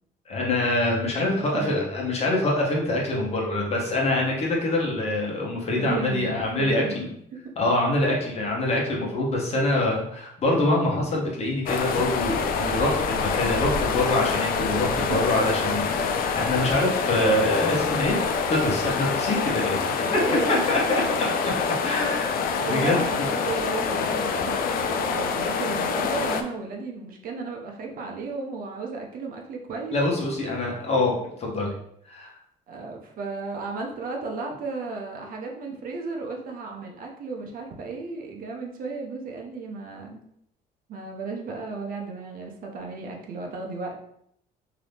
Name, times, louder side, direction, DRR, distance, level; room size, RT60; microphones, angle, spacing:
voice 1, 0.3-7.0 7.6-18.2 18.5-20.2 20.7-21.0 21.8-23.3 29.9-31.1 31.4-31.8 32.1-32.3, left 2 dB, 40° left, -2 dB, 1.0 m, -25 dB
voice 2, 5.8-6.3 6.6-7.1 8.0-8.2 15.1-15.2 20.0-21.0 22.6-30.0 32.7-40.2 40.9-44.0, right 4 dB, 60° right, 1 dB, 0.7 m, -34 dB
sound 1, 11.7-26.4, left 5 dB, 60° left, 0.4 m, -26 dB
2.8 x 2.6 x 3.4 m, 0.73 s
cardioid pair, 110°, 17 cm